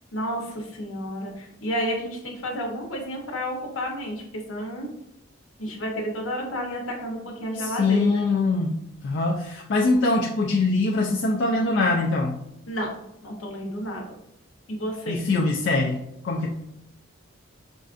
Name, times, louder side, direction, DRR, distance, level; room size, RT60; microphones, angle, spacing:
voice 1, 0.1-4.2 4.5-4.9 5.6-8.3 12.7-14.1 14.7-15.2, equal, 90° left, 0 dB, 0.9 m, -31 dB
voice 2, 7.6-8.8 9.0-12.4 15.1-16.5, left 3 dB, 60° left, -1 dB, 0.4 m, -23 dB
5.2 x 2.4 x 2.4 m, 0.83 s
head